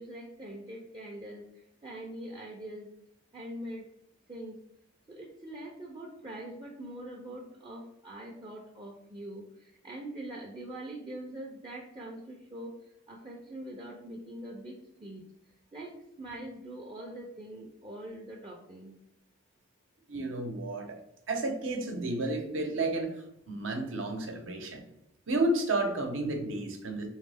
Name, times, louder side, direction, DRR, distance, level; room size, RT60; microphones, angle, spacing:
voice 1, 0.0-2.9 3.3-3.9 4.3-4.6 5.1-19.0, right 1 dB, 25° right, -1 dB, 0.5 m, -43 dB
voice 2, 20.1-21.0 21.3-24.8 25.3-27.1, right 2 dB, 80° right, 3 dB, 0.9 m, -31 dB
3.8 x 3.1 x 3.4 m, 0.80 s
head